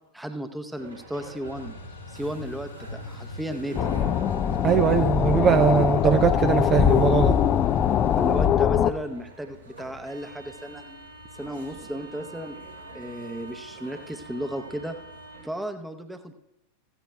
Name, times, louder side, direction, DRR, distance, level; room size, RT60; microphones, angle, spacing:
voice 1, 0.1-1.8 2.1-4.0 8.2-10.8 11.3-12.6 12.9-15.0 15.4-16.3, right 1 dB, 5° right, 7 dB, 0.9 m, -34 dB
sound 1, 0.8-15.4, right 1 dB, 90° right, 3.6 m, -45 dB
sound 2, 1.4-8.5, left 2 dB, 70° left, 1.7 m, -41 dB
sound 3, 3.7-8.9, left 9 dB, 30° left, 0.4 m, -22 dB
voice 2, 4.6-7.4, right 7 dB, 25° right, 8 dB, 0.5 m, -21 dB
16.0 x 15.0 x 2.3 m, 0.89 s
figure-of-eight pair, 90°, 0 cm